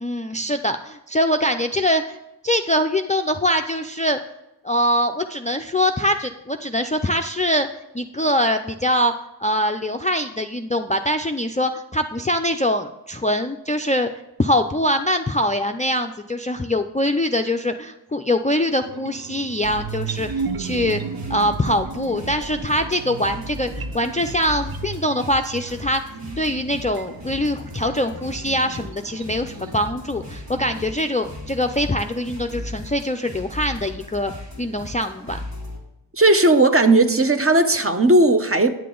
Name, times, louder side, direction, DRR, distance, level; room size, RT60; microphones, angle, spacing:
voice 1, 0.0-4.2 4.6-7.7 7.9-9.1 9.4-14.1 14.4-21.0 21.3-26.0 26.4-34.3 34.6-35.4, left 1 dB, 15° left, 0.4 m, -23 dB
sound 1, 18.8-31.0, right 6 dB, 55° right, 0.6 m, -35 dB
sound 2, 19.6-35.8, left 1 dB, 75° right, 2.5 m, -37 dB
voice 2, 36.2-38.8, right 2 dB, 30° right, 0.8 m, -16 dB
9.4 x 6.6 x 3.8 m
wide cardioid pair, 45°, 44 cm